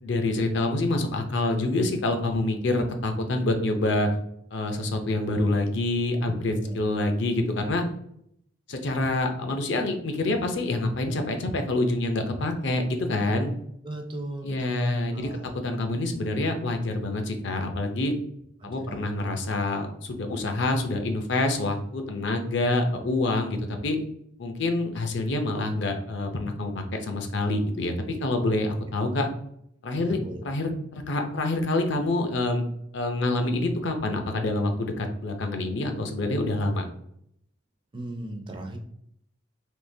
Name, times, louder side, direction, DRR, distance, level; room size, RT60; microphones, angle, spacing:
voice 1, 0.0-4.1 4.5-7.8 8.7-13.5 14.4-15.3 15.5-18.1 18.6-24.0 24.4-29.3 29.8-32.6 32.9-36.8, left 2 dB, 60° left, 5 dB, 0.5 m, -27 dB
voice 2, 6.6-6.9 13.8-15.5 18.6-19.1 29.9-30.4 37.9-38.8, right 1 dB, 25° right, 4 dB, 0.4 m, -37 dB
3.6 x 2.8 x 2.6 m, 0.72 s
head